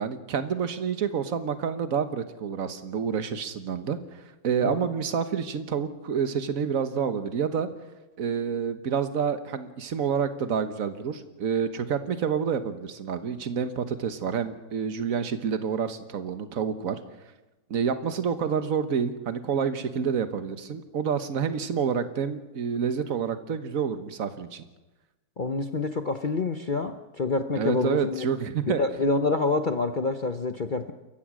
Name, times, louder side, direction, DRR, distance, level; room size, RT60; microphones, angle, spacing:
voice 1, 0.0-4.0 4.4-7.7 8.2-17.0 17.7-24.6 27.6-28.8, right 7 dB, 50° right, 10 dB, 1.5 m, -28 dB
voice 2, 25.4-28.3 28.7-30.9, left 3 dB, 55° left, 7 dB, 0.5 m, -27 dB
27.5 x 15.0 x 6.2 m, 1.1 s
omnidirectional pair, 2.0 m